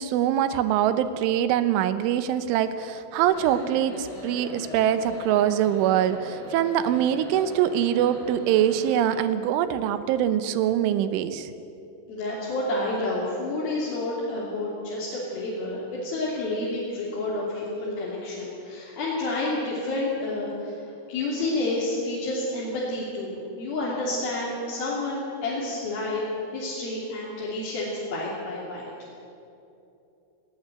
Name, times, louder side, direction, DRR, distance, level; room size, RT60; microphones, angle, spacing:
voice 1, 0.0-11.5, right 10 dB, 85° right, 12 dB, 3.4 m, -23 dB
sound 1, 3.2-9.2, left 1 dB, 35° left, 6.4 m, -41 dB
voice 2, 12.1-26.2 26.5-28.9, left 2 dB, 55° left, -6 dB, 4.7 m, -29 dB
18.5 x 18.0 x 9.5 m, 2.8 s
omnidirectional pair, 5.4 m